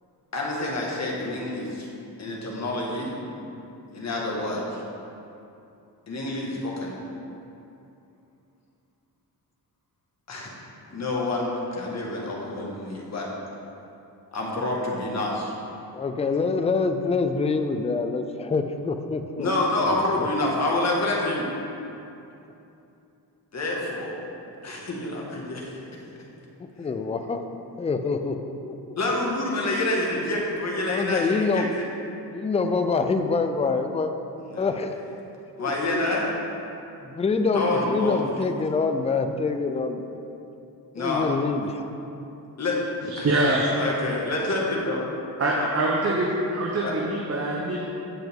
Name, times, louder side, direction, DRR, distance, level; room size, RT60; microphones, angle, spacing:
voice 1, 0.3-1.9 2.2-3.1 3.9-4.8 6.1-6.9 10.3-10.5 10.9-13.2 14.3-15.5 19.4-21.4 23.5-24.1 24.6-25.7 28.9-31.9 34.5-34.7 35.6-36.3 37.5-38.2 40.9-41.3 42.6-42.7 43.1-43.3 43.8-45.0 45.6-45.7 46.8-46.9, left 2 dB, 40° left, -3 dB, 1.7 m, -27 dB
voice 2, 15.9-19.5 19.8-20.3 26.8-27.4 27.8-28.8 30.9-31.7 32.3-34.1 34.6-35.0 35.6-36.0 37.0-40.0 41.0-41.8, left 4 dB, 15° left, 7 dB, 0.4 m, -26 dB
voice 3, 43.2-43.7 45.4-47.8, right 2 dB, 35° right, -3 dB, 0.9 m, -24 dB
15.0 x 5.7 x 3.6 m, 2.8 s
wide cardioid pair, 140°, 41 cm